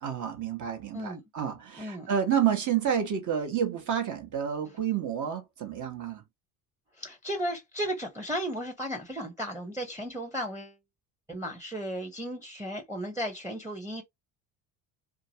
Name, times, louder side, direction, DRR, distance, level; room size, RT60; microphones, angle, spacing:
voice 1, 0.0-6.2, right 8 dB, 45° right, 1.1 m, -29 dB
voice 2, 1.8-2.1 7.0-10.8 11.3-14.0, equal, 5° right, 0.8 m, -35 dB
2.9 x 2.3 x 2.8 m
hypercardioid pair, 75°, 42 cm